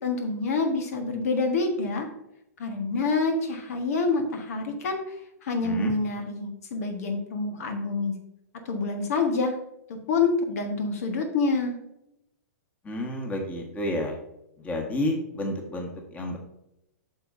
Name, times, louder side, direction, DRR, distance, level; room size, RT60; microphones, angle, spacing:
voice 1, 0.0-2.1 2.6-5.1 5.4-8.1 8.6-9.5 9.9-11.8, left 3 dB, 60° left, 5 dB, 1.4 m, -27 dB
voice 2, 5.6-5.9 12.8-14.2 14.6-16.4, left 1 dB, 15° left, 1 dB, 1.6 m, -30 dB
8.8 x 6.4 x 2.7 m, 0.83 s
hypercardioid pair, 120°, 9 cm